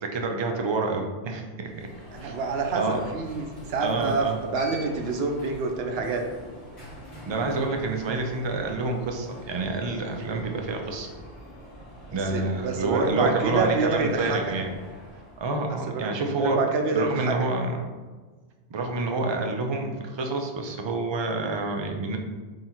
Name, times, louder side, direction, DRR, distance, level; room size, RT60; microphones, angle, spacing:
voice 1, 0.0-1.9 2.2-2.3 2.7-3.0 3.8-4.4 7.3-11.1 12.1-14.8 15.4-16.6 16.9-17.9 18.7-22.2, right 3 dB, 45° right, 3 dB, 0.3 m, -28 dB
Alarm, 1.6-15.6, equal, 80° left, 1.9 m, -44 dB
voice 2, 2.1-6.2 12.1-14.4 15.9-16.1 16.4-17.4, right 3 dB, 75° right, 4 dB, 0.8 m, -27 dB
3.8 x 2.8 x 4.3 m, 1.3 s
omnidirectional pair, 1.1 m